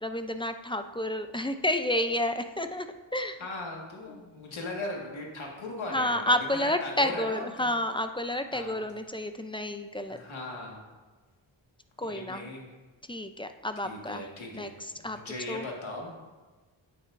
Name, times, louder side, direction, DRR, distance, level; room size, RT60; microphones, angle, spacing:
voice 1, 0.0-2.9 3.1-3.4 5.9-10.2 12.0-12.5 13.1-14.2 14.5-14.7 15.0-15.2 15.5-15.7, left 1 dB, 10° left, 8 dB, 0.5 m, -30 dB
voice 2, 3.4-6.3 6.6-7.7 8.5-8.8 10.1-10.8 12.0-12.7 13.8-14.7 15.0-16.3, left 2 dB, 75° left, -1 dB, 1.8 m, -38 dB
9.1 x 8.7 x 2.6 m, 1.3 s
cardioid pair, 60°, 47 cm